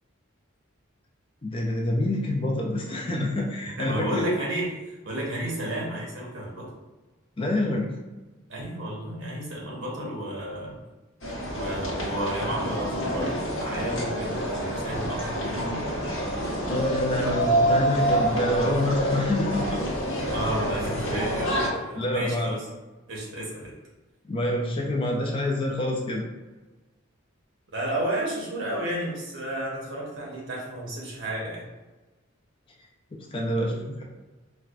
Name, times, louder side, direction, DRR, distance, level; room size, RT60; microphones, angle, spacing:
voice 1, 1.4-4.2 7.4-7.9 16.7-19.8 22.0-22.6 24.3-26.2 33.1-34.0, left 1 dB, 25° left, -1 dB, 0.4 m, -27 dB
voice 2, 3.8-4.7 5.0-6.7 8.5-10.8 11.5-16.1 20.3-22.6 23.1-23.7 27.7-31.7, right 1 dB, 65° right, -3 dB, 1.0 m, -32 dB
sound 1, 11.2-21.7, right 1 dB, 70° left, 1.0 m, -27 dB
4.4 x 2.2 x 2.4 m, 1.2 s
head